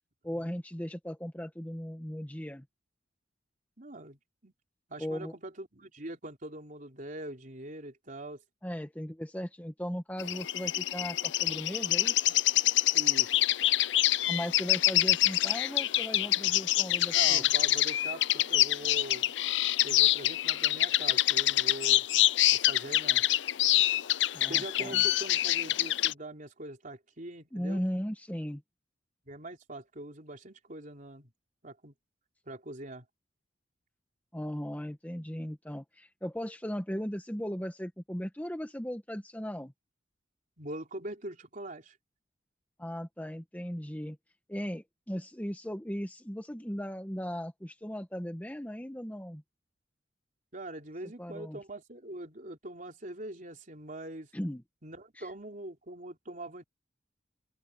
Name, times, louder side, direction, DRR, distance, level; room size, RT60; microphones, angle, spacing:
voice 1, 0.2-2.6 5.0-5.3 8.6-12.1 14.3-17.5 24.3-25.0 27.5-28.6 34.3-39.7 42.8-44.2 44.5-49.4 51.2-51.6 54.3-54.6 55.2-55.3, equal, 10° left, 1.4 m, -37 dB
voice 2, 3.8-4.5 4.9-8.4 12.9-13.3 17.1-19.3 19.8-22.1 22.5-23.2 24.5-27.8 29.3-31.3 31.6-31.9 32.5-33.0 40.6-42.0 50.5-54.3 54.8-56.6, right 1 dB, 45° right, 3.9 m, -43 dB
sound 1, 10.2-26.1, left 15 dB, 70° left, 0.6 m, -26 dB
open air
head